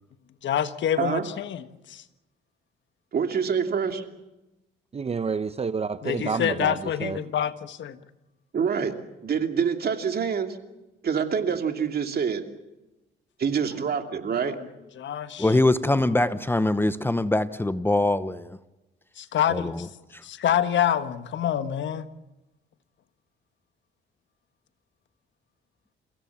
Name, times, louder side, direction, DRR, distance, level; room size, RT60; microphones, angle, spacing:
voice 1, 0.4-2.0 6.0-8.0 14.4-14.6 14.9-15.5 19.2-19.9 20.2-22.1, left 10 dB, 70° left, 1.4 m, -27 dB
voice 2, 3.1-4.0 8.5-8.9 9.2-10.6 11.0-12.4 13.4-14.6, right 6 dB, 50° right, 2.7 m, -26 dB
voice 3, 4.9-6.7 7.0-7.2, right 5 dB, 30° right, 0.8 m, -28 dB
voice 4, 15.4-18.6 19.5-19.9 20.1-20.2, left 2 dB, 10° left, 0.9 m, -23 dB
30.0 x 16.0 x 7.2 m
cardioid pair, 90°, 20 cm